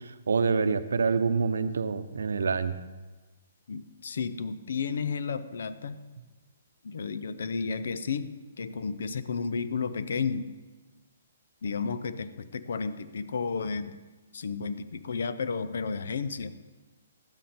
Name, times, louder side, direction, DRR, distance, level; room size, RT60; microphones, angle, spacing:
voice 1, 0.0-2.7, right 5 dB, 80° right, 11 dB, 0.7 m, -26 dB
voice 2, 3.7-6.0 6.8-10.5 11.6-14.0 14.3-16.6, left 5 dB, 70° left, 12 dB, 0.7 m, -32 dB
12.5 x 9.2 x 4.3 m, 1.2 s
hypercardioid pair, 150°, 0 cm